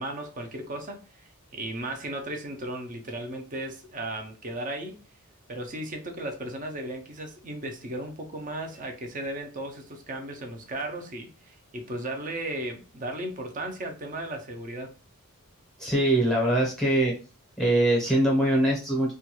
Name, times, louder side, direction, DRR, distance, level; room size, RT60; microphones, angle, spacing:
voice 1, 0.0-5.0 5.5-14.9, right 1 dB, 35° right, 0.5 m, -35 dB
voice 2, 15.8-17.1 17.6-19.1, right 1 dB, ahead, 0.8 m, -22 dB
2.4 x 2.3 x 2.9 m
head